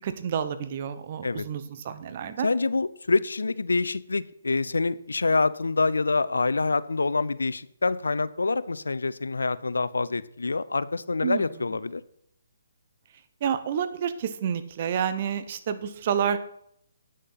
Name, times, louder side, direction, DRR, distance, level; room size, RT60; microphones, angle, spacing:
voice 1, 0.0-2.5 11.2-11.4 13.4-16.4, right 8 dB, 45° right, 11 dB, 1.0 m, -29 dB
voice 2, 2.4-12.0, left 3 dB, 85° left, 17 dB, 0.5 m, -26 dB
9.3 x 6.5 x 5.7 m, 0.72 s
hypercardioid pair, 145°, 0 cm